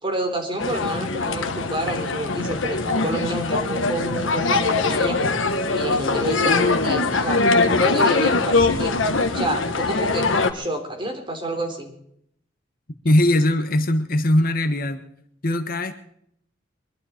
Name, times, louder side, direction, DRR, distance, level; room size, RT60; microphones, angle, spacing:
voice 1, 0.0-5.2 5.7-8.9 9.3-11.9, right 1 dB, 25° right, 3 dB, 3.8 m, -29 dB
sound 1, 0.6-10.5, left 3 dB, 85° left, 1.4 m, -22 dB
voice 2, 13.0-15.0 15.4-15.9, left 1 dB, 50° left, 8 dB, 1.3 m, -20 dB
23.0 x 12.0 x 4.4 m, 0.69 s
head